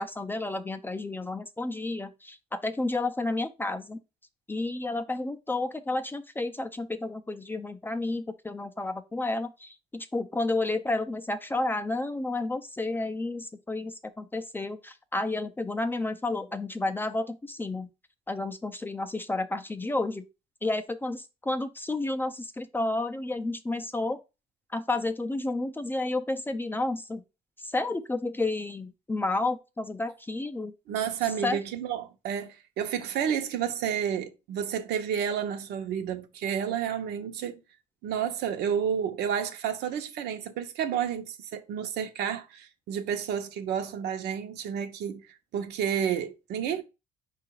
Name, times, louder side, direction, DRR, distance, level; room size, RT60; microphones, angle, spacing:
voice 1, 0.0-4.0 4.5-17.9 18.3-20.2 20.6-24.2 24.7-27.2 27.6-30.7 31.4-31.6, left 2 dB, 10° left, 0.4 m, -31 dB
voice 2, 30.9-37.6 38.0-45.2 45.5-46.8, right 8 dB, 80° right, 0.8 m, -30 dB
4.6 x 2.4 x 4.6 m
cardioid pair, 110°, 17 cm